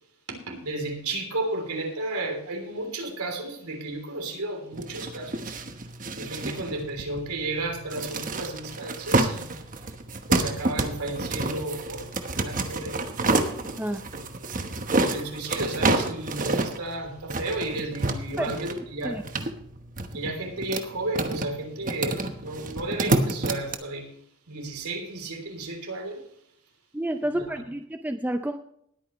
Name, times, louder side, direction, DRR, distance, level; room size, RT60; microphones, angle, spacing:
voice 1, 0.3-5.6 6.2-9.5 10.3-12.1 12.3-13.0 15.1-19.2 20.1-24.1 24.5-26.3 27.4-27.5, right 2 dB, 90° right, 3.3 m, -33 dB
sound 1, 4.7-23.7, right 2 dB, 40° right, 1.1 m, -29 dB
voice 2, 18.4-19.2 26.9-28.6, right 1 dB, 10° right, 0.5 m, -30 dB
19.5 x 9.1 x 3.1 m
head